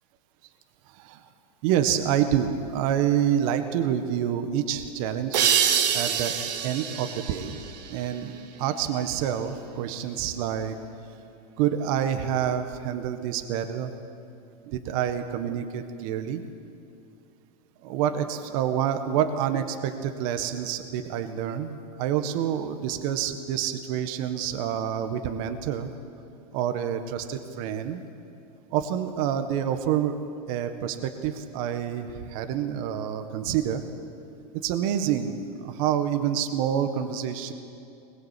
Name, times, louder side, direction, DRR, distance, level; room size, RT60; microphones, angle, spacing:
voice 1, 0.9-1.3 1.6-5.6 5.9-6.4 6.6-7.6 7.9-10.8 11.6-13.9 14.7-16.4 17.8-25.9 26.5-28.0 28.7-30.1 30.5-33.8 34.5-37.5, right 9 dB, 55° right, 8 dB, 1.7 m, -27 dB
sound 1, 5.3-8.7, right 8 dB, 85° right, 1.9 m, -26 dB
21.5 x 21.0 x 8.5 m, 2.6 s
supercardioid pair, 135°, 21 cm